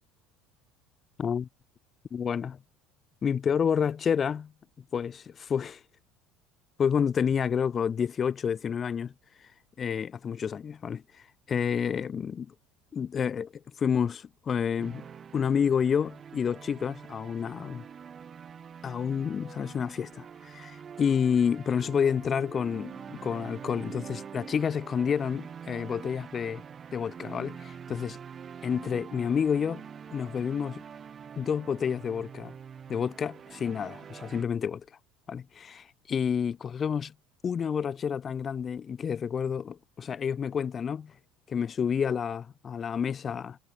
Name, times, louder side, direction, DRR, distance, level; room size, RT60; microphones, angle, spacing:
voice 1, 1.2-1.5 2.1-2.6 3.2-4.5 4.9-5.8 6.8-9.1 9.8-11.0 11.5-12.5 12.9-15.1 15.3-17.8 18.8-26.6 26.9-28.2 28.6-29.8 30.1-30.8 31.4-32.5 32.9-34.9 35.3-37.1 37.4-41.1 41.5-43.6, left 7 dB, 30° left, 0.4 m, -29 dB
sound 1, 14.8-34.4, right 7 dB, 35° right, 3.3 m, -45 dB
supercardioid pair, 115°, 0 cm